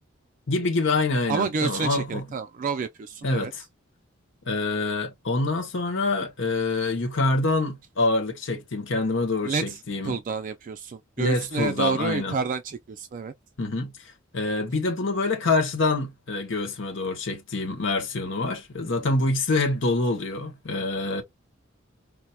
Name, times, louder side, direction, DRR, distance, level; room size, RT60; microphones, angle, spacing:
voice 1, 0.5-2.2 3.2-3.6 4.4-10.2 11.2-12.3 13.6-13.9 14.3-21.2, left 3 dB, 65° left, 1.0 m, -26 dB
voice 2, 1.3-3.5 9.4-13.3, right 5 dB, 40° right, 0.3 m, -29 dB
4.3 x 2.1 x 2.3 m
head